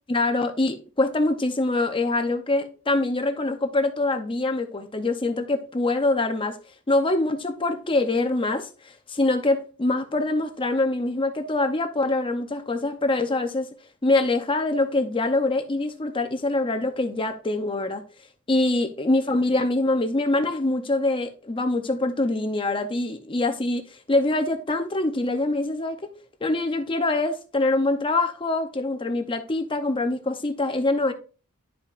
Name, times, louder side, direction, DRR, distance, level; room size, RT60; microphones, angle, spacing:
voice 1, 0.1-6.6 6.9-13.7 14.0-18.0 18.5-26.1 26.4-31.1, left 2 dB, 25° left, 0.7 m, -24 dB
11.5 x 5.2 x 2.5 m
head